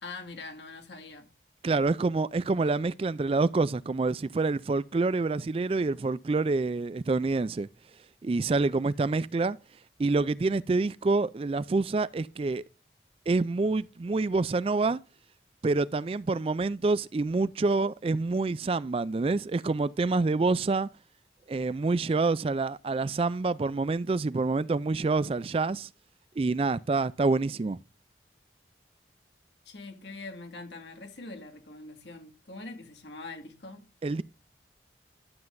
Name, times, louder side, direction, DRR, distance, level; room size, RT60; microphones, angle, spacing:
voice 1, 0.0-1.3 29.7-33.9, left 3 dB, 85° left, 2.0 m, -43 dB
voice 2, 1.6-7.7 8.2-9.6 10.0-12.6 13.3-15.0 15.6-20.9 21.5-25.9 26.4-27.8 34.0-34.2, right 3 dB, 35° right, 0.3 m, -27 dB
12.0 x 7.7 x 2.6 m
head